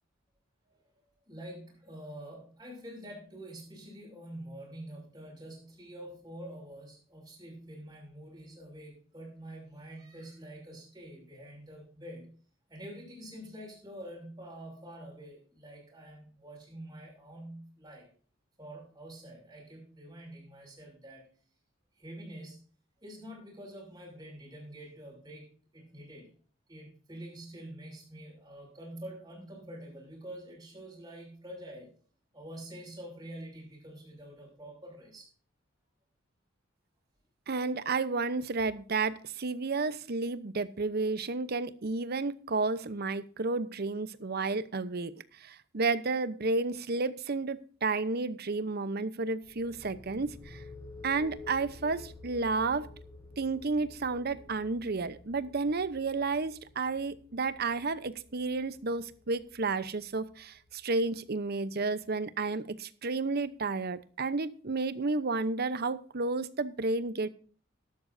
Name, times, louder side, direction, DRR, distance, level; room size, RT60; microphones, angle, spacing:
voice 1, 0.6-12.3 12.7-18.1 18.6-21.3 22.0-22.6 23.0-25.5 25.7-26.3 26.7-31.9 32.3-35.3, right 1 dB, 20° right, -1 dB, 6.4 m, -46 dB
voice 2, 37.5-45.1 45.4-50.6 51.0-52.9 53.4-67.3, right 3 dB, 55° right, 14 dB, 0.8 m, -31 dB
sound 1, 49.4-61.0, left 3 dB, 15° left, 2.5 m, -51 dB
13.5 x 12.5 x 2.7 m, 0.43 s
head